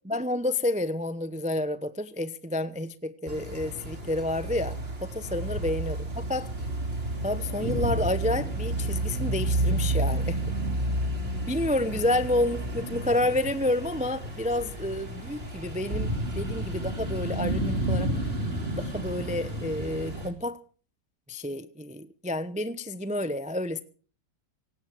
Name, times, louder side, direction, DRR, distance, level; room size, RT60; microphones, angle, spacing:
voice 1, 0.1-6.5 7.2-10.4 11.5-18.1 18.8-20.6 21.3-23.8, left 1 dB, 10° right, 0.3 m, -29 dB
sound 1, 3.3-20.3, right 1 dB, 30° right, 3.4 m, -31 dB
18.0 x 16.5 x 4.6 m
omnidirectional pair, 2.0 m